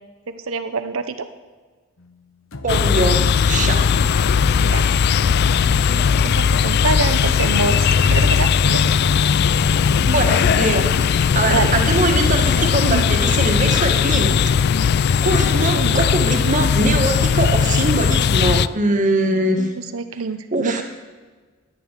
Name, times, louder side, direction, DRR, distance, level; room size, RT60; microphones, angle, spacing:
voice 1, 0.3-1.3 4.6-5.0 5.3-5.4 5.7-9.0 11.5-11.7 12.8-13.2 15.7-16.0 19.6-20.8, right 4 dB, 80° right, 10 dB, 0.7 m, -26 dB
sound 1, 2.0-2.2 2.5-8.7 9.0-12.5, left 2 dB, 75° left, 1.0 m, -32 dB
voice 2, 2.6-3.9 10.1-14.3 15.2-19.7 20.5-20.8, right 2 dB, 40° right, 4 dB, 1.6 m, -22 dB
sound 2, 2.7-18.7, left 7 dB, 55° left, 0.3 m, -18 dB
11.0 x 10.5 x 7.4 m, 1.4 s
head